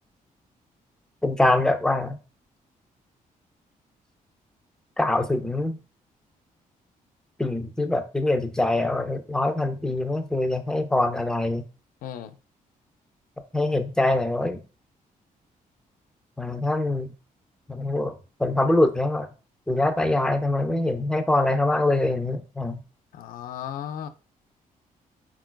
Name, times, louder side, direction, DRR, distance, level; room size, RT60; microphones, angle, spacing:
voice 1, 1.2-2.2 5.0-5.8 7.4-11.6 13.5-14.6 16.4-17.1 17.7-18.1 18.4-19.3 19.7-22.8, left 2 dB, 5° left, 0.3 m, -24 dB
voice 2, 12.0-12.4 23.1-24.1, left 9 dB, 75° left, 0.4 m, -35 dB
3.7 x 2.3 x 2.2 m
cardioid pair, 135°, 14 cm